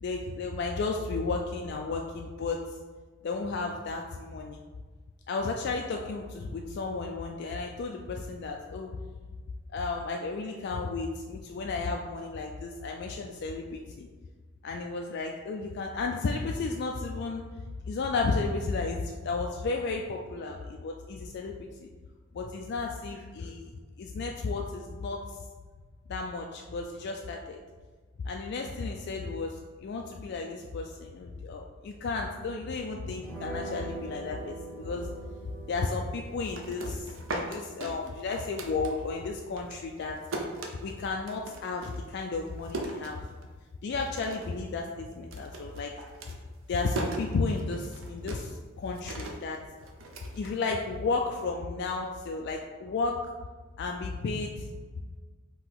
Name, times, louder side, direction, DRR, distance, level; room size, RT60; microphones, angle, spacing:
voice 1, 0.0-2.8 3.2-4.6 5.3-8.9 9.7-14.1 14.6-17.4 17.9-21.9 22.3-23.7 24.0-25.4 26.1-27.6 28.2-35.1 35.7-37.1 37.3-40.2 40.8-43.2 43.8-45.9 46.7-49.6 50.3-53.2 53.8-54.6, left 3 dB, 55° left, 1 dB, 0.3 m, -33 dB
sound 1, 33.2-40.9, right 3 dB, 10° left, 0.8 m, -45 dB
sound 2, 36.3-39.3 39.6-43.7 44.0-44.6 44.9-51.1, right 2 dB, 70° right, 0.6 m, -39 dB
3.9 x 2.9 x 4.6 m, 1.4 s
head